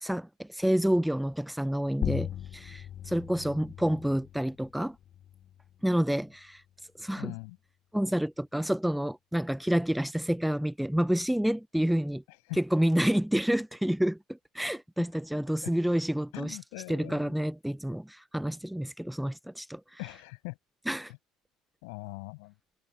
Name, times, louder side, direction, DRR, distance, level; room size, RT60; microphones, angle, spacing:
voice 1, 0.0-5.0 5.8-6.6 7.0-7.3 7.9-12.2 12.6-16.6 16.9-19.8 20.9-21.1, equal, 5° right, 1.0 m, -29 dB
sound 1, 2.0-7.1, left 11 dB, 45° left, 2.9 m, -39 dB
voice 2, 7.2-7.6 12.5-12.6 15.6-15.7 16.3-17.3 20.0-20.6 21.8-22.5, left 32 dB, 65° left, 7.2 m, -41 dB
figure-of-eight pair, 60°, 0 cm